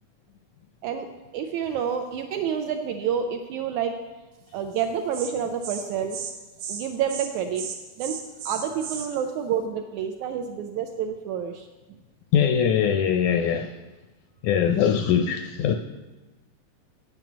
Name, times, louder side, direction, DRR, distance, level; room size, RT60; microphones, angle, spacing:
voice 1, 1.3-3.9 4.5-6.2 6.7-7.7 8.0-8.2 8.4-11.7, right 8 dB, 80° right, 1.7 m, -28 dB
Insect, 4.7-4.9 5.1-5.3 5.6-5.8 6.1-6.3 6.6-6.8 7.1-7.3 7.6-9.1, right 7 dB, 65° right, 2.7 m, -35 dB
voice 2, 12.3-13.7 14.4-15.8, left 8 dB, 80° left, 1.7 m, -22 dB
9.2 x 7.9 x 6.0 m
omnidirectional pair, 3.8 m